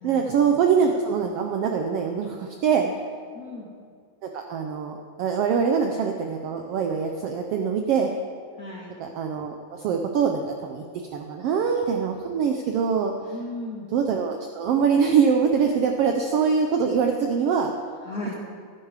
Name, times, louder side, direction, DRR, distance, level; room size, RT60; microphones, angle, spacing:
voice 1, 0.0-2.9 4.2-8.1 9.0-13.1 13.9-17.7, right 6 dB, 75° right, 3 dB, 1.4 m, -23 dB
voice 2, 3.3-3.7 8.6-9.0 13.3-13.9 18.0-18.3, left 2 dB, 40° left, -3 dB, 1.6 m, -35 dB
12.0 x 10.0 x 4.9 m, 2.1 s
omnidirectional pair, 3.4 m